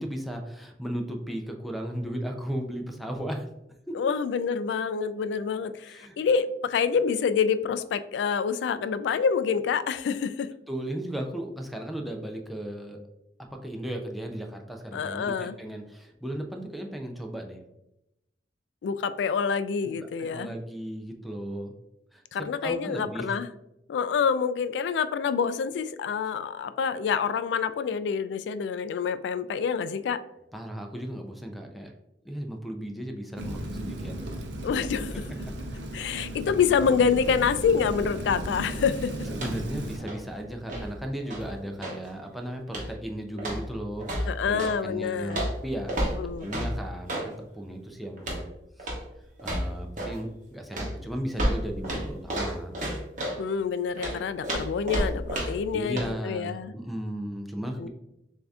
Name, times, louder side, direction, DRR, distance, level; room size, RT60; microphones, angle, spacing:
voice 1, 0.0-3.5 3.9-4.0 5.8-6.2 10.7-13.0 13.6-17.6 20.2-21.7 22.1-23.3 30.5-31.9 32.2-34.3 39.3-48.5 48.8-48.9 49.4-52.8 55.7-57.9, right 1 dB, ahead, 1 dB, 0.4 m, -35 dB
voice 2, 3.9-10.5 14.9-15.6 18.8-20.5 22.3-23.5 23.9-30.2 34.6-35.2 35.9-39.1 43.3-43.4 44.3-45.5 46.1-46.5 53.4-56.7 57.8-57.9, left 6 dB, 75° left, 12 dB, 0.3 m, -27 dB
Rain, 33.4-40.0, right 1 dB, 80° right, 0.6 m, -35 dB
sound 1, 39.3-39.7 40.0-42.1 42.7-43.0 43.4-44.8 45.3-47.3 48.2-48.5 48.8-49.1 49.4-50.2 50.7-53.4 54.0-55.7 56.0-56.1, equal, 45° right, 1.0 m, -31 dB
6.6 x 2.7 x 2.3 m, 0.88 s
head